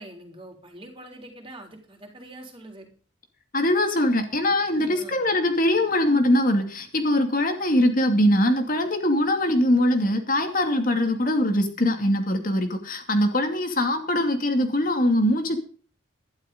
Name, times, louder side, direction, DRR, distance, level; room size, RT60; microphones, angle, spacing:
voice 1, 0.0-2.9 4.8-5.2, right 1 dB, 25° right, 2 dB, 3.7 m, -44 dB
voice 2, 3.5-15.6, left 1 dB, 45° left, 5 dB, 2.5 m, -22 dB
12.0 x 11.5 x 5.3 m, 0.41 s
head